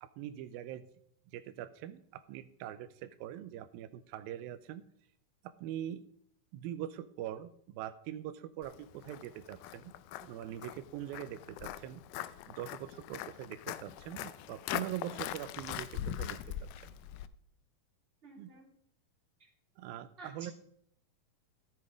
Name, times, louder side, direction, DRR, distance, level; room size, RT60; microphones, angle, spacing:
voice 1, 0.0-0.9 1.3-4.8 5.4-6.1 6.5-9.9 10.2-16.6 16.8-16.9 18.4-18.5 19.8-20.5, right 12 dB, 85° right, 11 dB, 2.4 m, -43 dB
Walk footsteps, 8.6-17.3, left 12 dB, 80° left, 1.9 m, -42 dB
voice 2, 18.2-18.7 19.4-19.5 20.2-20.5, right 2 dB, 15° right, -2 dB, 3.3 m, -51 dB
13.5 x 7.8 x 5.1 m, 0.67 s
omnidirectional pair, 4.1 m